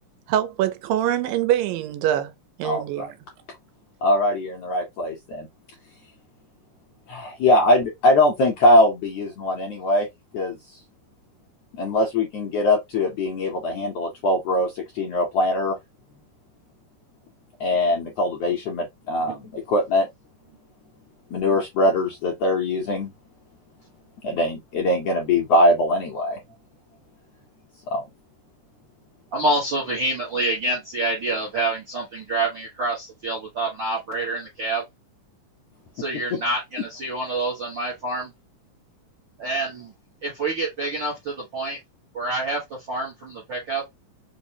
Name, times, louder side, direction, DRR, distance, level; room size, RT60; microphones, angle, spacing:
voice 1, 0.3-2.3 2.6-3.1, right 12 dB, 90° right, 2.4 m, -24 dB
voice 2, 2.6-3.1 4.0-5.5 7.1-10.1 10.3-10.6 11.7-15.7 17.6-20.1 21.3-23.1 24.2-26.4 27.9-28.0, left 1 dB, 75° left, 1.5 m, -22 dB
voice 3, 29.3-34.8 36.0-38.3 39.4-39.9 40.2-41.8 42.1-43.8, right 2 dB, 70° right, 1.1 m, -27 dB
5.2 x 2.0 x 2.7 m
omnidirectional pair, 3.9 m